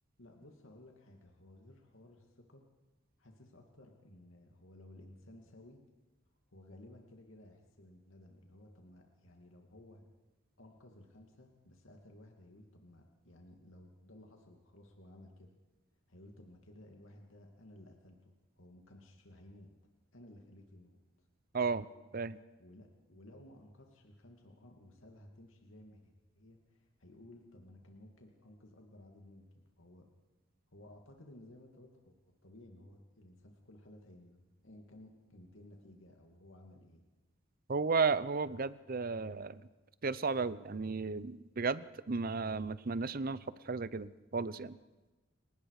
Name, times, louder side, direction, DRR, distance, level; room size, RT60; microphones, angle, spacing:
voice 1, 0.2-2.6 3.2-5.8 6.5-10.0 10.6-15.6 16.1-19.7 20.1-21.3 22.6-30.0 30.7-32.2 32.4-37.0, left 1 dB, 80° left, 2 dB, 2.5 m, -57 dB
voice 2, 21.5-21.9 22.1-22.4 37.7-39.6 40.0-44.8, right 4 dB, 45° right, 17 dB, 0.7 m, -34 dB
29.5 x 18.5 x 5.0 m, 1.1 s
head